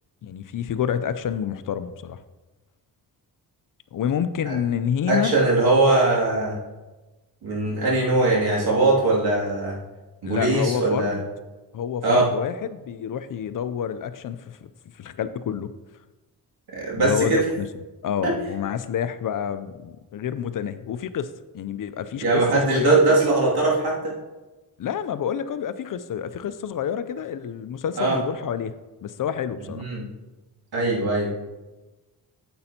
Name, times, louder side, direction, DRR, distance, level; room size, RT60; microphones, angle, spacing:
voice 1, 0.2-2.2 3.9-5.4 10.2-11.2 11.7-14.7 15.0-15.7 16.9-17.7 18.0-23.2 24.8-28.7 29.0-29.8, left 8 dB, 55° left, 13 dB, 0.5 m, -28 dB
voice 2, 5.1-6.6 7.4-9.8 10.2-11.2 12.0-12.3 16.7-17.4 18.2-18.3 22.2-24.0 28.0-28.2 29.7-30.0 30.7-31.3, right 2 dB, 70° right, -4 dB, 2.6 m, -21 dB
9.3 x 7.8 x 2.9 m, 1.2 s
cardioid pair, 85°, 38 cm